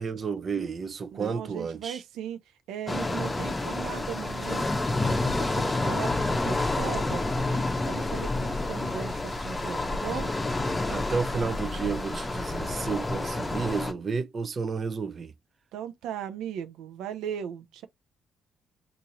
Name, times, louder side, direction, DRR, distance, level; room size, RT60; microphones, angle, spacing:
voice 1, 0.0-2.0 10.9-15.3, right 5 dB, 45° right, 0.5 m, -31 dB
voice 2, 1.1-2.4 2.7-4.7 5.2-7.3 7.8-10.3 15.7-17.9, right 9 dB, 90° right, 0.5 m, -37 dB
sound 1, 2.9-13.9, left 2 dB, 20° left, 0.7 m, -29 dB
2.9 x 2.6 x 4.0 m
cardioid pair, 90°, 0 cm